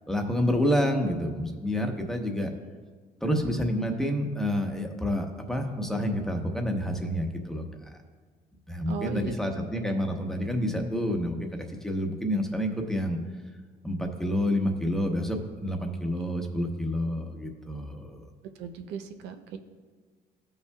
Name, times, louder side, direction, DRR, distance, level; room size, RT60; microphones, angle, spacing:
voice 1, 0.1-2.5 3.2-7.6 8.7-11.5 11.8-13.2 13.8-18.3, equal, 5° left, 3 dB, 0.9 m, -28 dB
voice 2, 8.9-9.9 18.6-19.6, right 7 dB, 90° right, 7 dB, 0.6 m, -38 dB
15.5 x 5.5 x 2.3 m, 1.5 s
cardioid pair, 110°, 17 cm